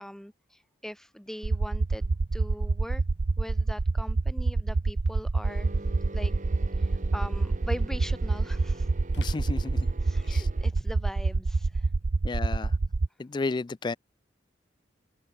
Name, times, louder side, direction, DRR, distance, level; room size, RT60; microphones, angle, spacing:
voice 1, 0.0-3.0 3.4-5.7 6.1-6.3 6.8-8.9 10.0-11.9, equal, 5° left, 1.2 m, -41 dB
sound 1, 1.4-13.1, right 3 dB, 70° right, 0.7 m, -26 dB
sound 2, 5.3-5.4 8.0-8.1 9.1-10.7, left 3 dB, 65° left, 3.5 m, -52 dB
sound 3, 5.4-10.7, right 1 dB, 45° right, 2.8 m, -45 dB
voice 2, 9.2-9.9 10.2-10.5 12.2-12.7 13.2-14.0, left 3 dB, 25° left, 0.3 m, -32 dB
open air
head